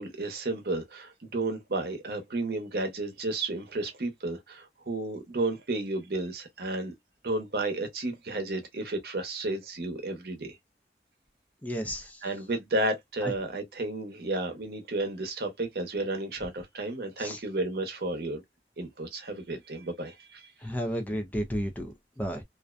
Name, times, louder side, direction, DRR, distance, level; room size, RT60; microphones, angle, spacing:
voice 1, 0.0-6.9 7.2-10.6 12.2-18.4 18.8-20.5, right 2 dB, 60° right, 0.8 m, -32 dB
voice 2, 11.6-12.2 13.2-13.3 17.2-17.4 20.6-22.4, equal, 10° left, 0.4 m, -32 dB
2.5 x 2.1 x 2.3 m
head